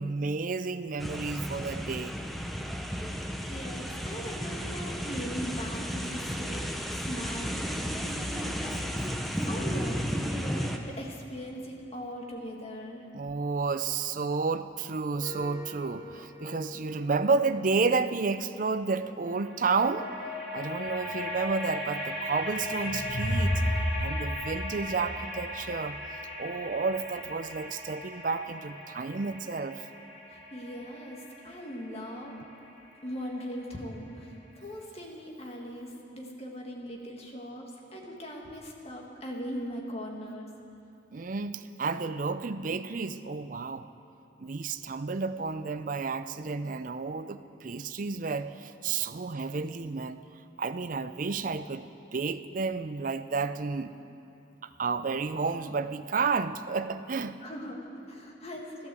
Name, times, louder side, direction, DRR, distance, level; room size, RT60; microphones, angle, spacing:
voice 1, 0.0-2.2 13.1-20.1 20.5-23.6 24.0-26.0 26.4-29.8 41.1-43.9 44.4-50.2 50.6-53.9 54.6-57.4, right 4 dB, 45° right, 12 dB, 0.5 m, -31 dB
sound 1, 1.0-10.8, equal, ahead, 0.7 m, -33 dB
voice 2, 3.2-13.1 30.3-32.4 33.0-40.5 57.4-58.9, equal, 35° left, 0 dB, 1.8 m, -40 dB
sound 2, 15.2-18.5 19.2-34.1, left 1 dB, 60° left, 2.6 m, -39 dB
sound 3, 22.5-25.8, equal, 75° left, 4.0 m, -31 dB
13.0 x 12.5 x 7.6 m, 2.7 s
head